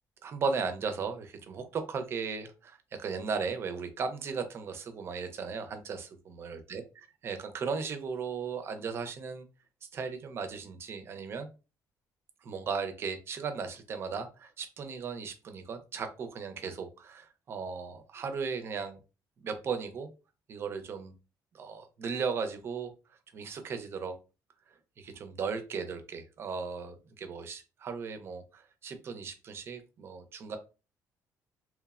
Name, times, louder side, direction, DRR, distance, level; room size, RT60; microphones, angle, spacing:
voice 1, 0.2-6.8 7.2-9.5 9.9-11.5 12.4-19.0 19.4-20.1 20.5-21.1 21.5-22.9 23.3-24.2 25.0-30.6, right 5 dB, 40° right, 0.4 m, -36 dB
3.0 x 2.0 x 2.3 m
cardioid pair, 155°, 7 cm